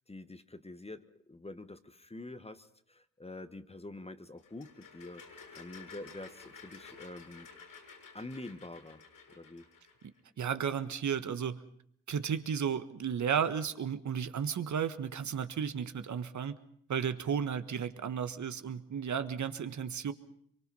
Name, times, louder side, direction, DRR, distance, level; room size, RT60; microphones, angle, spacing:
voice 1, 0.1-5.2 5.5-7.5 8.1-9.6, left 2 dB, 20° left, 11 dB, 1.3 m, -46 dB
sound 1, 4.4-10.1, left 5 dB, 80° left, 6.6 m, -53 dB
voice 2, 10.4-11.6 12.1-16.6 16.9-20.1, right 7 dB, 55° right, 11 dB, 1.5 m, -33 dB
24.5 x 23.0 x 5.6 m, 0.66 s
supercardioid pair, 55°, 34 cm